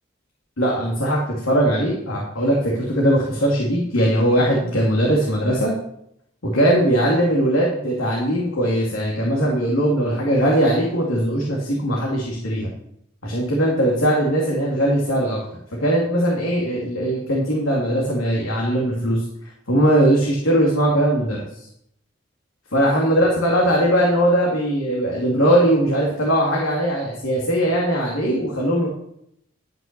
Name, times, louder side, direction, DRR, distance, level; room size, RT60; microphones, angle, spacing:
voice 1, 0.6-5.7 6.4-12.7 13.2-15.4 15.8-19.2 19.7-21.5 22.7-28.9, right 1 dB, 80° left, -2 dB, 2.4 m, -20 dB
12.0 x 5.8 x 6.7 m, 0.75 s
head